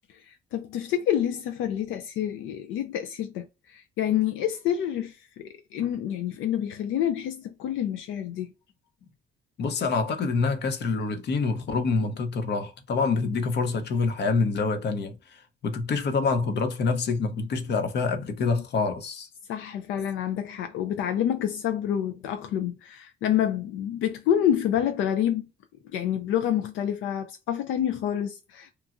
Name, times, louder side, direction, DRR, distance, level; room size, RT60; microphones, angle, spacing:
voice 1, 0.2-8.5 19.5-25.5 25.8-28.7, left 10 dB, 85° left, 0.4 m, -28 dB
voice 2, 9.6-19.3, left 4 dB, 60° left, 0.7 m, -26 dB
3.0 x 2.2 x 2.4 m
cardioid pair, 90°, 20 cm